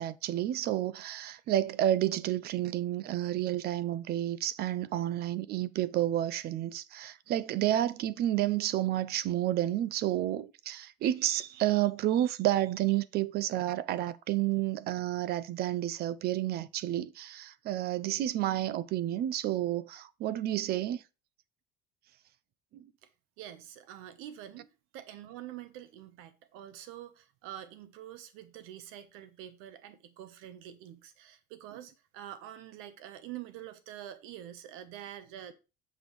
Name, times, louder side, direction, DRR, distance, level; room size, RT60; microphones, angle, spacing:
voice 1, 0.0-21.0, right 13 dB, 50° right, 0.4 m, -30 dB
voice 2, 23.4-35.5, right 11 dB, 90° right, 1.0 m, -46 dB
7.0 x 6.2 x 3.1 m
cardioid pair, 150°, 21 cm